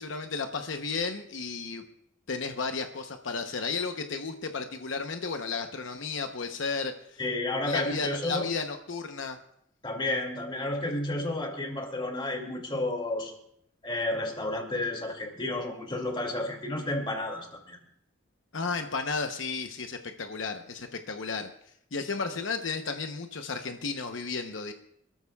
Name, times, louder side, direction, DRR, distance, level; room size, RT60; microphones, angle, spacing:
voice 1, 0.0-1.8 2.3-6.9 7.7-9.4 18.5-21.5 21.9-24.7, left 4 dB, 80° left, 6 dB, 0.9 m, -33 dB
voice 2, 7.2-8.5 9.8-13.3 13.8-17.8, left 2 dB, 25° left, 2 dB, 2.4 m, -31 dB
26.5 x 13.5 x 2.4 m, 0.73 s
head